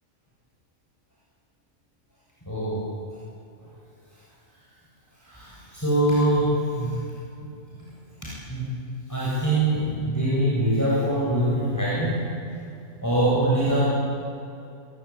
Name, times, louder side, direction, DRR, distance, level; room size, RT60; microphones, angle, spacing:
voice 1, 2.5-2.9 5.2-7.0 8.2-8.7 9.1-12.3 13.0-13.9, right 1 dB, 15° left, -8 dB, 7.5 m, -23 dB
23.5 x 23.0 x 8.8 m, 2.6 s
omnidirectional pair, 1.3 m